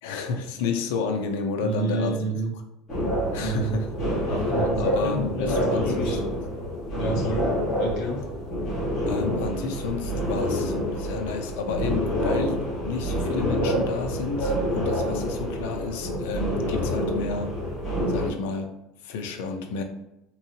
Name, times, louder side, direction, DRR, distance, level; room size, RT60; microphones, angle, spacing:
voice 1, 0.0-2.2 3.3-4.0 4.8-6.2 9.1-17.6 18.1-18.7 19.0-19.8, left 5 dB, 85° left, 0.6 m, -31 dB
voice 2, 1.6-2.5 3.4-3.8 4.2-6.2 6.9-7.5 7.8-8.2, right 2 dB, 45° left, 1.1 m, -29 dB
sound 1, 2.9-18.3, equal, 15° left, 1.5 m, -27 dB
3.7 x 3.0 x 2.8 m
cardioid pair, 180°, 0 cm